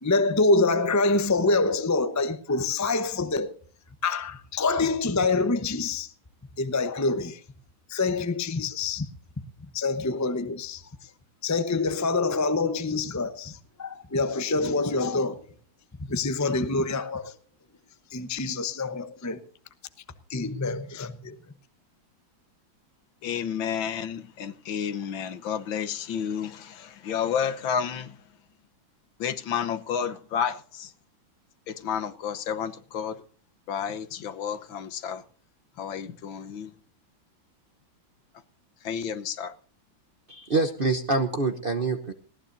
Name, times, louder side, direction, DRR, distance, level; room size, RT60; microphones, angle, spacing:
voice 1, 0.0-3.5 4.0-6.1 6.6-7.4 7.9-9.1 9.7-11.1 11.4-15.4 16.0-17.3 18.1-19.4 20.3-21.4, left 3 dB, 25° left, 0.3 m, -26 dB
voice 2, 23.2-28.2 29.2-30.9 31.7-33.2 33.7-35.2 35.8-36.7 38.8-39.5, left 8 dB, 75° left, 1.8 m, -31 dB
voice 3, 40.3-42.1, right 3 dB, 45° right, 0.7 m, -26 dB
19.5 x 17.5 x 2.7 m
omnidirectional pair, 2.2 m